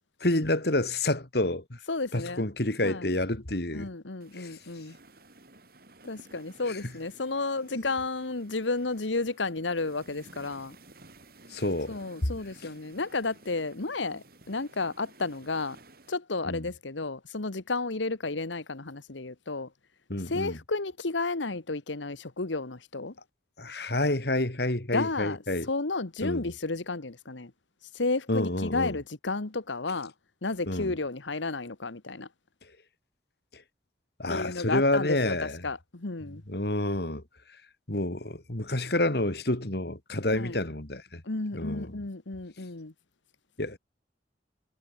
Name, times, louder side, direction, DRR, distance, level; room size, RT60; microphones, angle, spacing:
voice 1, 0.2-1.8 2.1-3.9 4.3-4.6 6.7-6.8 7.7-7.8 11.5-12.0 16.4-16.6 20.1-20.6 23.6-25.7 26.2-26.5 28.3-29.0 30.7-30.9 33.5-33.6 34.2-35.6 36.5-37.2 37.9-41.2 41.5-42.0 43.6-43.8, left 1 dB, 60° left, 2.5 m, -29 dB
voice 2, 1.9-2.4 2.8-3.1 3.7-5.0 6.1-10.7 11.9-15.8 16.1-19.7 20.2-23.1 24.9-25.4 25.7-27.5 27.8-30.1 30.4-32.3 34.3-36.4 40.3-40.6 41.2-42.9, left 3 dB, 85° left, 1.4 m, -32 dB
sound 1, 4.2-16.2, right 2 dB, 55° right, 5.7 m, -55 dB
head